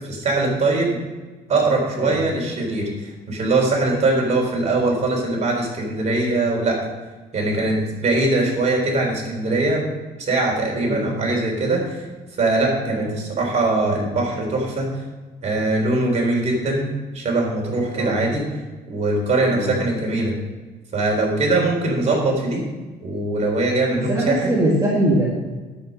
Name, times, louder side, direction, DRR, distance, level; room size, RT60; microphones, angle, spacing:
voice 1, 0.1-1.0 1.5-6.8 7.3-9.8 10.2-12.0 12.4-15.0 15.4-16.9 17.1-18.5 18.9-20.4 20.9-22.6 23.0-24.5, right 2 dB, 40° right, -1 dB, 3.7 m, -21 dB
voice 2, 23.9-25.3, right 1 dB, 20° right, -5 dB, 2.1 m, -22 dB
9.4 x 7.8 x 5.3 m, 1.3 s
cardioid pair, 110°, 17 cm